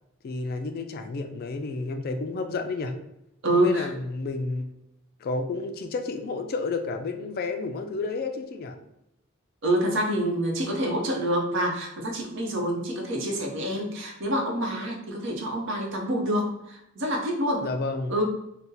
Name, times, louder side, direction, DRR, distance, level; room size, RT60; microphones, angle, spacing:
voice 1, 0.2-2.9 3.5-4.7 5.2-8.8 17.6-18.1, left 3 dB, 50° left, 6 dB, 0.3 m, -31 dB
voice 2, 3.4-3.9 9.6-17.6 18.1-18.2, right 1 dB, 65° right, 0 dB, 0.8 m, -27 dB
2.7 x 2.1 x 3.7 m, 0.83 s
head